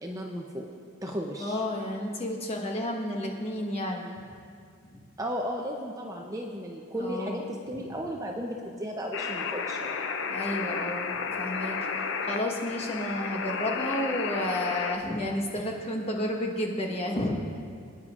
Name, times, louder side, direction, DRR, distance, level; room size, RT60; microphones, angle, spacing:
voice 1, 0.0-0.7 1.0-1.6 5.2-7.4 7.7-10.1, equal, 15° right, 0 dB, 0.5 m, -35 dB
voice 2, 1.4-4.1 4.9-5.0 7.0-7.4 10.3-11.8 12.3-17.4, left 1 dB, 30° left, -1 dB, 1.2 m, -31 dB
sound 1, 9.1-15.0, left 5 dB, 60° left, 0.5 m, -32 dB
22.0 x 9.7 x 2.5 m, 2.3 s
head